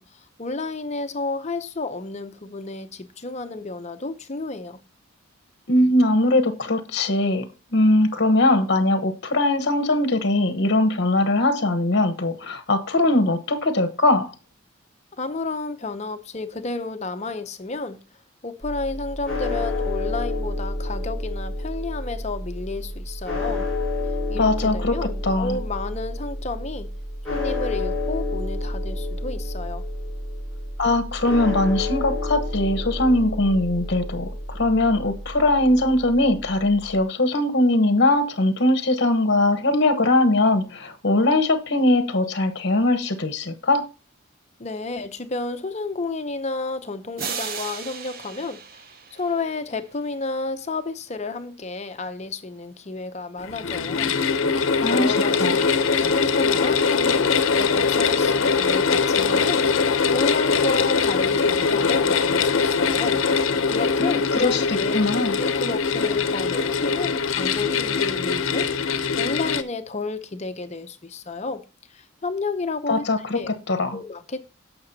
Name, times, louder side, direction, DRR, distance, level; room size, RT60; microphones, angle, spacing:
voice 1, 0.0-4.8 15.2-18.0 18.4-23.7 24.3-26.9 27.3-29.9 44.6-48.6 49.1-54.2 54.5-59.7 60.1-65.0 65.4-68.7 69.2-71.6 71.9-73.0 73.3-73.5 73.9-74.4, left 3 dB, 30° left, 0.6 m, -31 dB
voice 2, 5.7-7.5 7.7-14.3 24.3-25.6 30.8-43.9 54.8-55.6 64.0-65.4 72.9-74.0, left 2 dB, 55° left, 1.0 m, -21 dB
sound 1, 18.6-37.0, left 2 dB, 5° left, 5.7 m, -30 dB
sound 2, 47.2-49.9, right 6 dB, 45° right, 0.6 m, -35 dB
sound 3, 53.4-69.6, left 5 dB, 70° left, 0.7 m, -22 dB
17.0 x 5.9 x 2.7 m
head